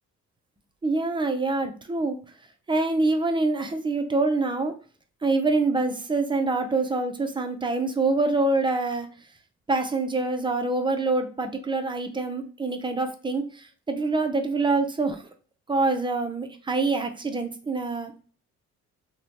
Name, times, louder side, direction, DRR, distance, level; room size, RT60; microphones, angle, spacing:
voice 1, 0.8-2.2 2.7-4.7 5.2-9.1 9.7-15.2 15.7-18.1, right 3 dB, 15° right, 6 dB, 0.4 m, -25 dB
3.0 x 2.1 x 2.7 m, 0.39 s
cardioid pair, 90°, 30 cm